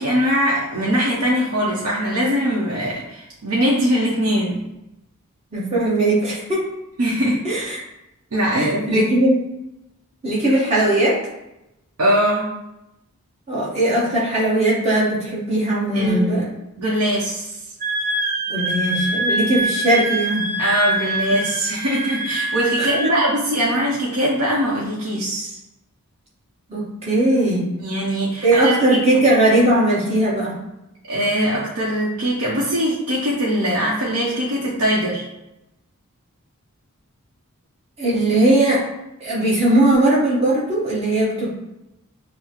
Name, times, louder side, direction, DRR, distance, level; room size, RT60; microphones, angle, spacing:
voice 1, 0.0-4.6 7.0-7.4 8.3-9.0 12.0-12.5 15.9-16.4 16.8-17.6 20.6-25.6 27.8-29.2 31.1-35.2, equal, 75° right, -5 dB, 0.7 m, -21 dB
voice 2, 5.5-6.6 7.4-7.8 8.5-9.3 10.2-11.2 13.5-16.5 18.5-20.5 22.8-23.1 26.7-27.7 28.4-30.6 38.0-38.8 39.2-41.5, right 1 dB, 30° right, -6 dB, 1.1 m, -19 dB
Wind instrument woodwind instrument, 17.8-23.1, right 2 dB, 45° right, 1.1 m, -24 dB
5.7 x 2.0 x 2.9 m, 0.90 s
head